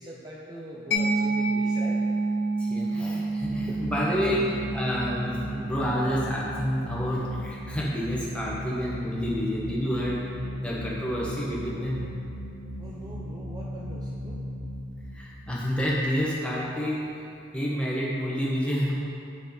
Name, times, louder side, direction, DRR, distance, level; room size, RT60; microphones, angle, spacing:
voice 1, 0.0-2.0 3.7-3.8 4.4-4.5 5.2-5.3 12.8-14.4, right 1 dB, 20° right, -5 dB, 0.6 m, -42 dB
Mallet percussion, 0.9-8.3, right 2 dB, 50° left, 1.3 m, -30 dB
voice 2, 2.6-10.2 10.6-12.1 15.1-17.0 17.5-19.0, equal, 5° left, -6 dB, 1.3 m, -29 dB
sound 1, 3.4-16.7, equal, 40° right, 1.3 m, -37 dB
8.4 x 6.2 x 4.4 m, 2.6 s
head